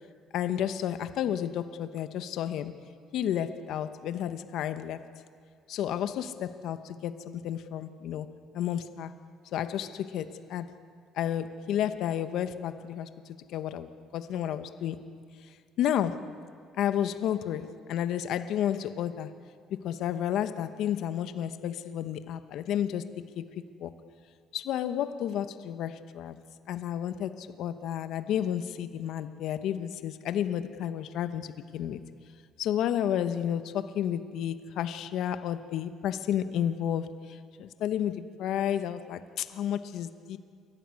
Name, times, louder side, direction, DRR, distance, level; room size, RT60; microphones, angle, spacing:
voice 1, 0.3-2.8 3.1-5.0 5.7-9.1 9.5-10.7 11.2-13.1 13.5-15.0 15.8-16.3 16.8-19.3 19.8-23.5 23.8-23.9 24.5-32.0 32.6-40.4, left 10 dB, 70° left, 11 dB, 1.1 m, -31 dB
28.5 x 14.5 x 9.7 m, 2.1 s
cardioid pair, 135°, 0 cm